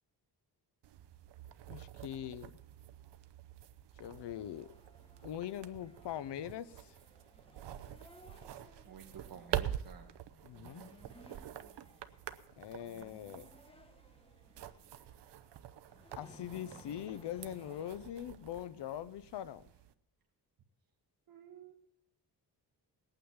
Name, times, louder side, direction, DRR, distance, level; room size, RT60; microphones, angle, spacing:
sound 1, 0.8-19.9, right 11 dB, 85° right, 0.9 m, -46 dB
voice 1, 1.7-2.5 4.0-4.7 5.2-6.9 10.4-10.9 12.6-13.5 16.2-19.6, left 11 dB, 85° left, 0.8 m, -42 dB
sound 2, 4.2-18.7, left 1 dB, 15° left, 1.6 m, -61 dB
voice 2, 8.8-10.1 21.3-21.7, right 8 dB, 60° right, 1.4 m, -52 dB
19.5 x 9.1 x 7.2 m
wide cardioid pair, 120°, 41 cm